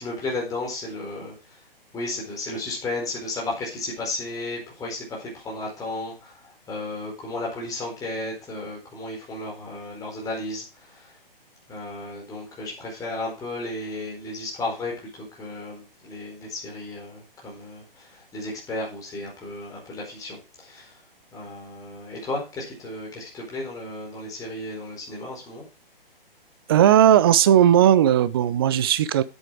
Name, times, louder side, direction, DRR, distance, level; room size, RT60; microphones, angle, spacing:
voice 1, 0.0-1.6 1.9-11.1 11.7-21.0 21.3-25.7, left 2 dB, 10° left, 4.5 m, -34 dB
voice 2, 26.7-29.2, right 10 dB, 25° right, 0.5 m, -17 dB
9.8 x 8.3 x 4.8 m
figure-of-eight pair, 130°, 29 cm